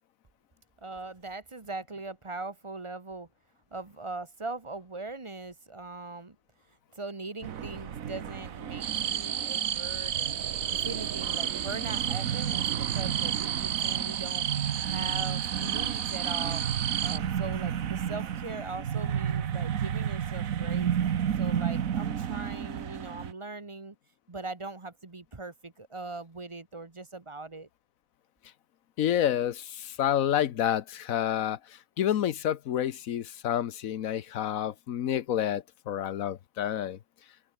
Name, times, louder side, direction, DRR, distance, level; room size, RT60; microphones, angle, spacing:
voice 1, 0.8-3.3 3.7-6.4 6.9-10.4 10.8-14.5 14.8-16.6 17.0-20.9 21.4-23.9 24.3-27.7, right 3 dB, 25° right, 1.2 m, -40 dB
sound 1, 7.4-23.3, right 9 dB, 85° right, 1.5 m, -32 dB
sound 2, 8.8-17.2, right 9 dB, 60° right, 1.0 m, -32 dB
voice 2, 29.0-37.0, left 10 dB, 90° left, 1.3 m, -29 dB
open air
omnidirectional pair, 1.4 m